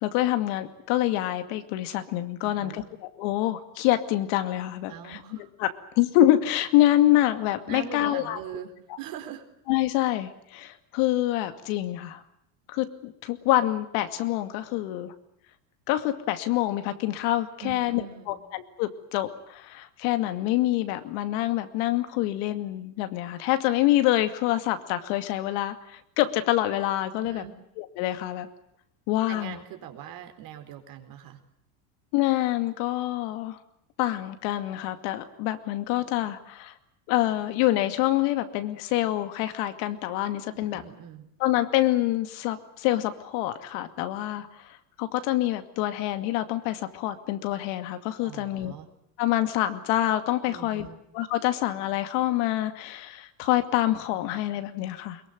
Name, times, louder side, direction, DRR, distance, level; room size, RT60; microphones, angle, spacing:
voice 1, 0.0-5.2 5.6-8.4 9.7-12.2 12.7-15.1 15.9-27.4 27.8-28.5 29.1-29.6 32.1-33.6 34.0-36.7 37.1-40.8 41.4-48.8 49.2-50.9 51.1-55.2, left 14 dB, 65° left, 9 dB, 2.5 m, -26 dB
voice 2, 2.4-2.8 4.9-5.5 7.7-9.4 17.6-18.4 27.2-27.5 29.3-31.4 40.5-41.3 48.2-48.9 50.4-51.0, right 10 dB, 45° right, 5 dB, 4.4 m, -42 dB
22.5 x 22.5 x 9.3 m, 0.74 s
supercardioid pair, 140°, 46 cm